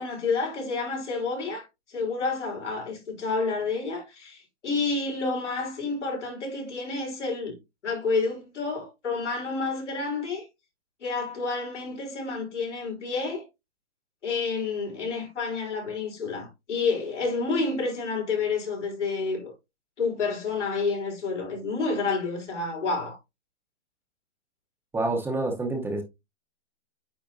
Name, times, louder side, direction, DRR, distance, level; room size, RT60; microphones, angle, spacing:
voice 1, 0.0-7.6 7.8-10.5 11.0-13.4 14.2-19.5 20.0-23.2, left 4 dB, 85° left, 4.1 m, -29 dB
voice 2, 24.9-26.0, right 2 dB, 5° right, 0.9 m, -27 dB
8.8 x 4.2 x 2.7 m
hypercardioid pair, 140°, 35 cm